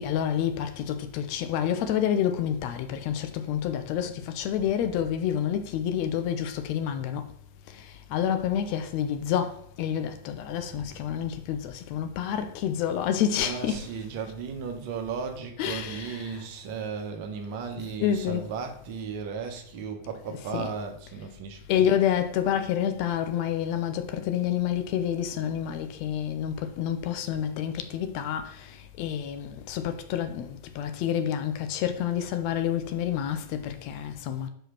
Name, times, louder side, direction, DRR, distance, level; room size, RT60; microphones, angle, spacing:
voice 1, 0.0-7.2 8.1-13.9 15.6-16.4 18.0-18.5 20.3-20.7 21.7-28.7 29.0-34.5, left 9 dB, 45° left, 0.8 m, -28 dB
voice 2, 10.7-11.1 13.4-21.8, right 6 dB, 45° right, 1.4 m, -36 dB
5.0 x 4.9 x 5.9 m
figure-of-eight pair, 90°, 0 cm